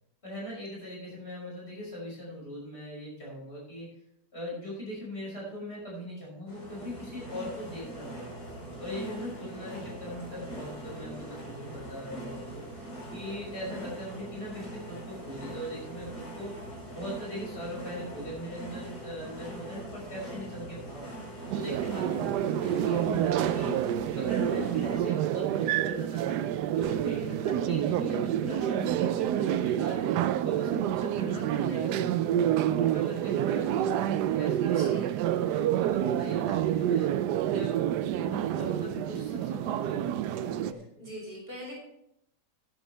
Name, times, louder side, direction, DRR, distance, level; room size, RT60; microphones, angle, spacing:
voice 1, 0.2-3.9 4.3-8.3 8.8-12.7 13.1-16.5 16.9-23.8 24.2-26.4 26.7-30.1 30.4-32.2 32.6-35.1 35.3-37.1 37.5-37.7 38.2-40.8, equal, 40° left, -4 dB, 6.0 m, -40 dB
sound 1, 6.5-25.0, right 1 dB, 70° left, 5.8 m, -42 dB
sound 2, 21.5-40.7, right 11 dB, 90° right, 1.2 m, -28 dB
voice 2, 34.6-35.1 40.6-41.7, equal, 35° right, -4 dB, 5.4 m, -43 dB
13.5 x 11.0 x 3.3 m, 0.77 s
omnidirectional pair, 1.7 m